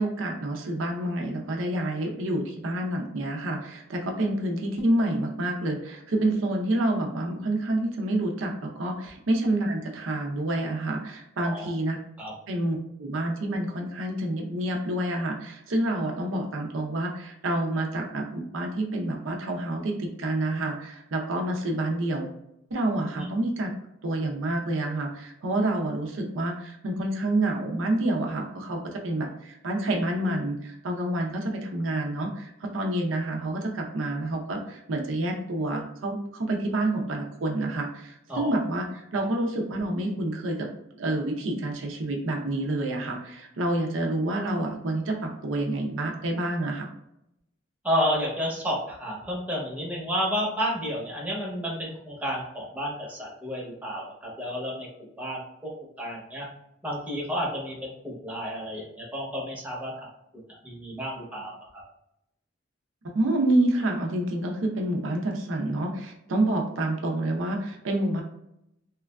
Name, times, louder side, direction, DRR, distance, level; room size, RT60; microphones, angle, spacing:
voice 1, 0.0-12.0 12.5-22.3 22.7-23.7 24.0-40.7 40.9-46.9 63.1-68.2, right 1 dB, 85° right, 1 dB, 0.5 m, -28 dB
voice 2, 11.4-11.7 12.2-12.3 23.2-23.3 38.3-38.5 39.1-39.3 47.8-54.9 55.2-55.4 56.0-56.5 56.8-60.1 60.3-61.8, equal, 10° right, -4 dB, 0.7 m, -31 dB
3.0 x 2.3 x 2.2 m, 0.81 s
head